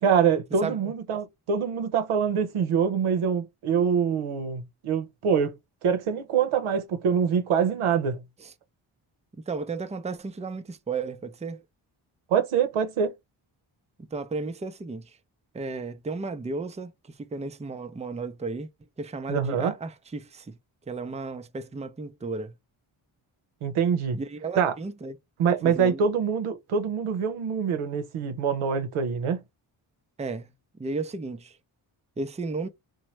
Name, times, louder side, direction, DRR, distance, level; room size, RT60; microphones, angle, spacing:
voice 1, 0.0-5.5 5.8-8.2 12.3-13.1 19.3-19.7 23.6-24.2 24.6-24.7 25.4-29.4, right 7 dB, 90° right, 0.7 m, -25 dB
voice 2, 9.3-11.6 14.1-15.2 15.5-18.7 19.0-20.6 20.9-22.5 24.1-25.2 25.6-26.1 30.2-30.5 30.8-31.6 32.2-32.7, right 3 dB, 15° right, 0.5 m, -34 dB
3.0 x 2.2 x 2.9 m
cardioid pair, 50°, 49 cm